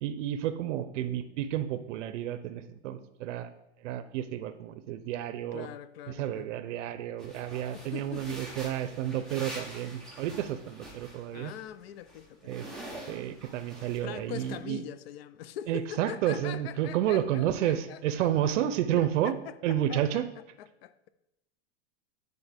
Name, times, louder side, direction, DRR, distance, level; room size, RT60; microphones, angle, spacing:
voice 1, 0.0-3.5 3.8-5.7 6.1-11.5 12.4-12.7 13.1-14.8 15.7-19.3 19.6-20.3, right 11 dB, 85° right, 0.6 m, -31 dB
voice 2, 5.5-6.5 7.7-8.4 11.3-12.6 14.0-18.6 18.9-21.1, left 11 dB, 60° left, 0.5 m, -43 dB
sound 1, 7.2-11.6 11.9-14.0 14.3-14.5, right 1 dB, ahead, 0.8 m, -46 dB
9.5 x 3.9 x 3.5 m
supercardioid pair, 170°, 36 cm